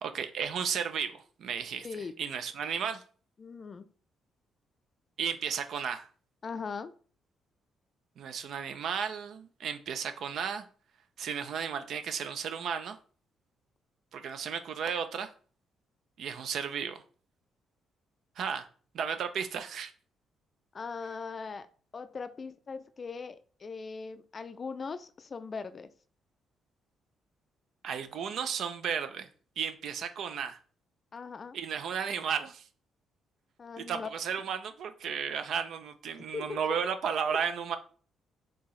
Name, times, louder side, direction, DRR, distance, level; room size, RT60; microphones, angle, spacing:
voice 1, 0.0-1.9 2.2-3.0 5.2-6.1 8.2-10.6 11.2-13.0 14.1-15.3 16.2-17.0 18.4-18.7 18.9-19.9 27.8-29.3 29.6-30.6 31.5-32.6 33.9-37.8, right 7 dB, 70° right, 9 dB, 0.5 m, -34 dB
voice 2, 1.8-2.1 3.4-3.9 6.4-6.9 20.7-21.7 21.9-25.9 31.1-31.6 33.6-34.1 36.3-36.6, left 5 dB, 40° left, 11 dB, 0.4 m, -40 dB
4.4 x 2.9 x 3.1 m, 0.42 s
cardioid pair, 90°, 0 cm